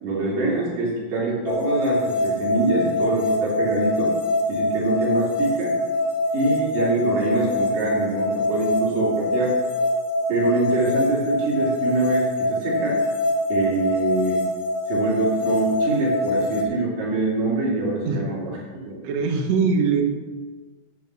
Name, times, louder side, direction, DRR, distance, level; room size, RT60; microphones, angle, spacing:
voice 1, 0.0-4.1 4.5-5.7 6.3-9.6 10.3-13.0 13.5-14.4 14.9-18.5 18.9-19.0, right 2 dB, 90° right, -4 dB, 4.7 m, -24 dB
sound 1, 1.5-16.6, left 1 dB, 80° left, 1.0 m, -24 dB
voice 2, 19.0-20.1, right 5 dB, 60° right, 3 dB, 2.1 m, -21 dB
11.0 x 8.1 x 6.0 m, 1.3 s
omnidirectional pair, 3.8 m